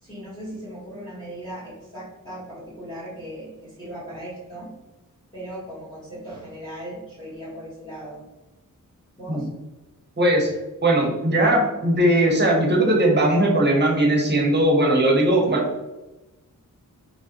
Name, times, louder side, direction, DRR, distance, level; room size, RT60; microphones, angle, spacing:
voice 1, 0.0-4.7 5.3-8.2 9.2-9.5, right 1 dB, 10° left, -10 dB, 1.4 m, -38 dB
voice 2, 10.2-10.5 10.8-15.9, right 1 dB, 30° right, -1 dB, 0.8 m, -19 dB
3.4 x 3.1 x 2.9 m, 1.1 s
wide cardioid pair, 130°, 34 cm